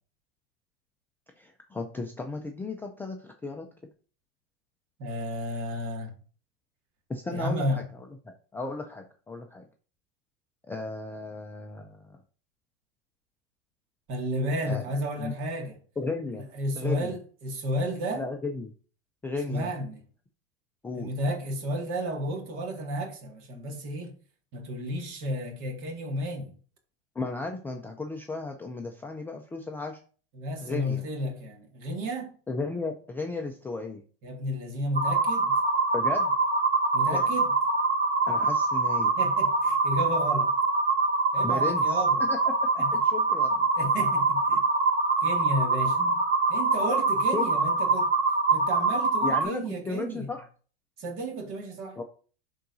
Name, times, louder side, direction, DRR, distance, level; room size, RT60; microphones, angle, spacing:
voice 1, 1.4-3.7 7.1-7.6 8.5-9.7 10.7-11.9 14.6-14.8 15.2-15.3 16.0-16.4 16.8-17.1 18.2-18.7 19.2-19.7 20.8-21.1 27.2-30.0 30.6-31.0 32.5-34.0 35.9-36.3 37.1-37.2 38.3-39.1 41.4-42.0 42.3-43.6 46.0-46.1 47.3-47.4 49.2-50.4 52.0-52.1, left 3 dB, 5° left, 0.4 m, -34 dB
voice 2, 5.0-6.1 7.3-7.9 14.1-15.8 16.3-18.3 19.3-20.0 20.9-24.1 24.5-26.5 30.3-32.3 34.2-35.5 36.9-37.5 39.2-40.5 41.3-42.3 42.8-43.0 43.8-44.6 45.2-46.0 46.5-48.1 48.5-50.3 51.0-52.0, equal, 45° right, 2.0 m, -32 dB
sound 1, 34.9-49.4, right 3 dB, 25° right, 2.1 m, -24 dB
11.5 x 3.9 x 2.6 m
supercardioid pair, 130°, 30 cm